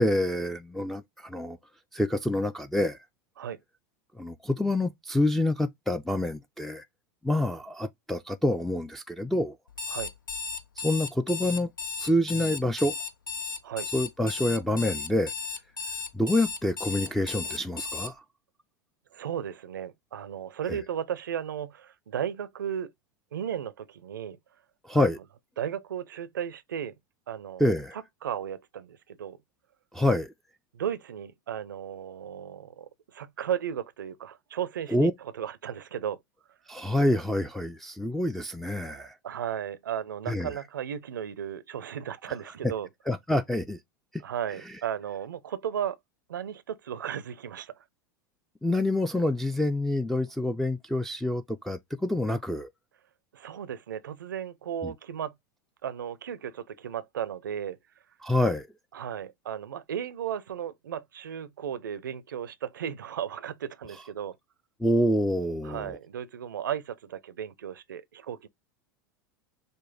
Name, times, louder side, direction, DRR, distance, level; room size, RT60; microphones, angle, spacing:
voice 1, 0.0-1.6 1.9-3.0 4.2-6.8 7.2-9.5 10.8-11.7 12.0-12.9 13.9-15.3 16.1-18.2 20.7-20.8 24.9-25.2 27.6-28.0 29.9-30.3 34.9-35.1 36.7-39.1 40.3-40.5 43.1-43.8 48.6-52.7 54.8-54.9 58.2-58.7 64.8-66.0, left 1 dB, 5° left, 0.3 m, -27 dB
Alarm, 9.7-18.1, left 5 dB, 85° left, 0.4 m, -35 dB
voice 2, 19.1-22.9 23.3-24.4 24.9-25.0 25.6-26.9 27.3-27.7 27.9-29.4 30.7-36.2 38.9-42.9 44.2-46.0 46.3-47.7 53.3-55.3 55.8-57.8 58.9-64.4 65.6-68.5, right 9 dB, 75° right, 0.5 m, -35 dB
5.2 x 2.1 x 3.8 m
figure-of-eight pair, 80°, 11 cm